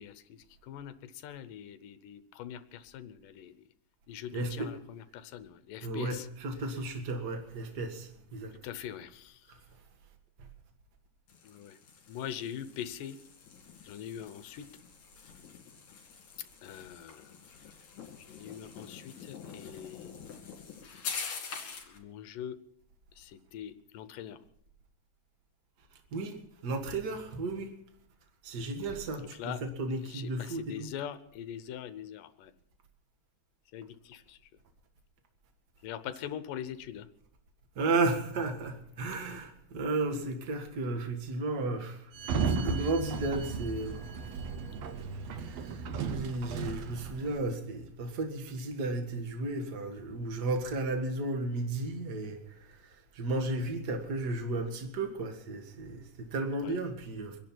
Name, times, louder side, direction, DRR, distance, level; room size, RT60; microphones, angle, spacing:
voice 1, 0.0-3.6 4.1-6.3 8.6-9.5 11.4-11.8 12.1-13.2 13.8-14.8 16.4-17.3 18.2-20.2 21.5-22.6 23.2-24.4 29.2-29.6 30.1-32.5 33.7-34.4 35.8-37.1 56.6-56.8, left 10 dB, 75° left, 2.4 m, -43 dB
voice 2, 4.3-4.8 5.8-8.5 26.1-26.4 26.6-27.7 28.4-30.9 37.8-44.1 44.4-44.6 45.4-57.4, right 2 dB, 40° right, 1.7 m, -34 dB
sound 1, 11.3-22.0, left 6 dB, 60° left, 3.9 m, -45 dB
Sliding door, 42.1-47.4, right 5 dB, 65° right, 1.8 m, -35 dB
25.5 x 10.5 x 4.5 m
omnidirectional pair, 4.0 m